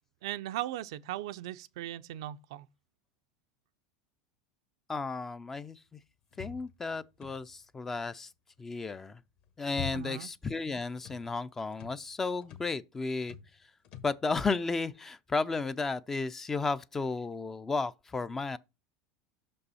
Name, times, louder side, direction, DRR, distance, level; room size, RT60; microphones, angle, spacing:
voice 1, 0.2-2.7 9.9-10.3, right 14 dB, 80° right, 0.4 m, -38 dB
voice 2, 4.9-6.0 6.4-8.3 8.6-9.2 9.6-13.4 14.0-18.6, left 3 dB, 15° left, 0.3 m, -33 dB
sound 1, 6.3-7.7 9.2-10.4 10.6-11.3 11.7-12.0 12.4-12.8 13.2-13.6 13.8-14.2, left 7 dB, 45° left, 1.2 m, -45 dB
6.1 x 5.3 x 4.1 m
supercardioid pair, 145°, 3 cm